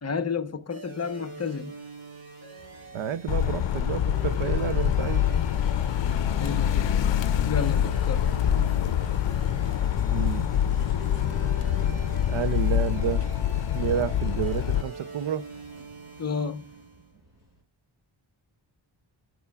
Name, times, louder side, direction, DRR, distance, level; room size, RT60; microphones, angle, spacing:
voice 1, 0.0-1.7 6.4-7.0 7.4-8.3 16.2-16.7, left 5 dB, 35° left, 0.8 m, -31 dB
sound 1, 0.7-17.1, right 3 dB, 50° right, 5.0 m, -44 dB
sound 2, 2.6-17.6, right 1 dB, 30° right, 5.4 m, -49 dB
voice 2, 2.9-5.2 10.1-10.5 12.3-13.2 13.7-15.4, right 9 dB, 75° right, 0.7 m, -30 dB
sound 3, 3.3-14.8, left 10 dB, 65° left, 0.6 m, -25 dB
15.0 x 7.2 x 2.3 m
wide cardioid pair, 115°, 47 cm